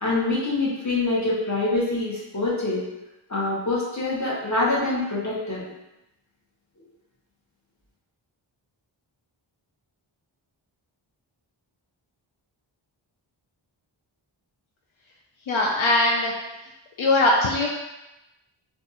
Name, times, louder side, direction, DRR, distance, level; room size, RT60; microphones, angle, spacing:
voice 1, 0.0-2.8 3.3-5.6, left 2 dB, 35° left, -6 dB, 1.1 m, -25 dB
voice 2, 15.5-16.3 17.0-17.7, left 2 dB, 80° left, -2 dB, 0.6 m, -20 dB
2.5 x 2.4 x 4.0 m, 0.95 s
wide cardioid pair, 80°, 47 cm